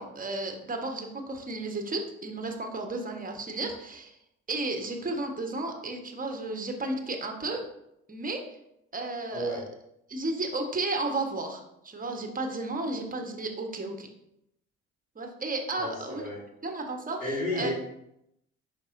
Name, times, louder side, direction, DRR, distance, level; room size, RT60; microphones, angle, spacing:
voice 1, 0.0-4.1 4.5-7.6 8.1-8.4 8.9-9.6 10.1-14.1 15.1-16.3 16.6-17.7, right 2 dB, 20° right, 3 dB, 1.2 m, -33 dB
voice 2, 9.3-9.6 15.8-16.4 17.2-17.7, left 1 dB, 85° left, -5 dB, 2.0 m, -32 dB
10.5 x 3.6 x 2.6 m, 0.80 s
figure-of-eight pair, 50°, 40 cm